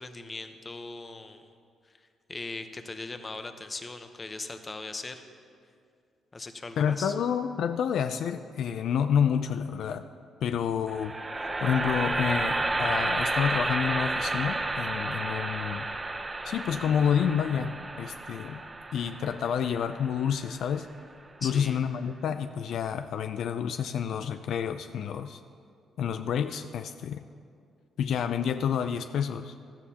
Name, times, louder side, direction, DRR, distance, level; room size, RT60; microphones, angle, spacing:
voice 1, 0.0-1.4 2.3-5.2 6.3-7.1 21.4-21.8, left 3 dB, 25° left, 8 dB, 0.8 m, -39 dB
voice 2, 6.8-10.1 10.4-11.1 11.6-15.9 16.4-18.6 18.9-20.9 21.4-25.4 26.0-27.2 28.0-29.6, left 8 dB, 70° left, 9 dB, 0.3 m, -29 dB
sound 1, 10.9-21.0, right 2 dB, 20° right, 0.7 m, -31 dB
16.0 x 12.0 x 2.8 m, 2.3 s
cardioid pair, 90°, 0 cm